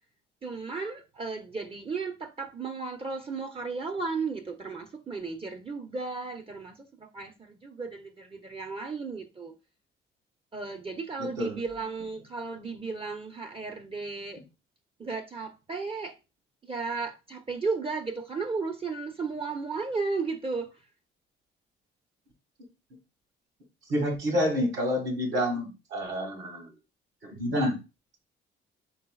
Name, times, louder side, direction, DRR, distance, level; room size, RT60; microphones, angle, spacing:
voice 1, 0.4-9.5 10.5-14.4 15.0-16.2 16.6-20.7, right 4 dB, 30° right, 0.7 m, -34 dB
voice 2, 11.2-11.6 23.9-26.7 27.2-27.8, equal, 70° right, 1.8 m, -28 dB
5.4 x 3.8 x 2.3 m
cardioid pair, 90°, 20 cm